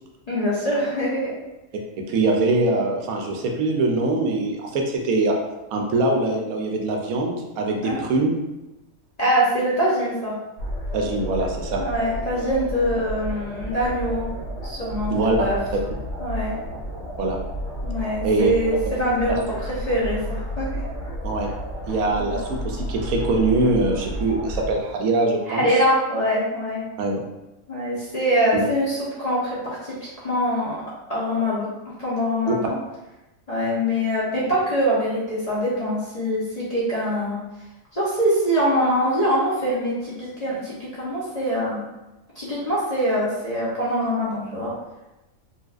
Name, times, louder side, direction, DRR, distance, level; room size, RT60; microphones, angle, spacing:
voice 1, 0.3-1.3 7.8-8.0 9.2-10.3 11.8-14.3 14.6-15.6 16.2-16.5 17.8-19.4 19.8-20.8 22.1-22.3 25.5-26.8 27.7-30.8 31.1-31.7 32.0-32.8 33.5-37.4 37.9-41.8 42.3-44.7, equal, 35° left, -9 dB, 0.7 m, -24 dB
voice 2, 2.1-5.4 5.7-8.4 10.9-11.8 15.1-15.4 17.2-17.4 18.2-18.5 19.3-19.4 21.2-21.5 21.9-25.7 27.0-27.2 28.5-28.7 32.5-32.6, right 2 dB, 75° right, 1 dB, 1.0 m, -23 dB
sound 1, 10.6-24.8, equal, 60° left, 1.1 m, -31 dB
4.0 x 2.4 x 2.4 m, 0.98 s
omnidirectional pair, 1.5 m